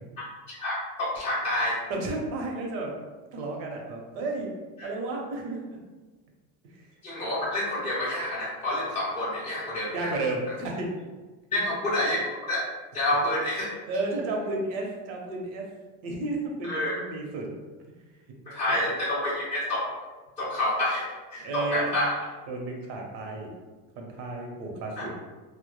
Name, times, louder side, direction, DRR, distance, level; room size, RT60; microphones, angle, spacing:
voice 1, 0.5-1.8 4.8-4.9 7.0-10.1 11.5-12.6 12.9-13.7 16.6-17.0 18.5-19.8 20.4-22.1 25.0-25.1, left 1 dB, 20° left, -9 dB, 0.3 m, -28 dB
voice 2, 1.9-3.0 3.3-4.5 4.8-5.8 6.7-6.9 9.9-10.9 13.9-15.7 16.0-17.5 18.7-18.8 21.4-21.9 22.5-23.5 24.0-25.1, right 2 dB, 70° right, 0 dB, 0.7 m, -32 dB
2.1 x 2.1 x 2.9 m, 1.3 s
cardioid pair, 140°, 37 cm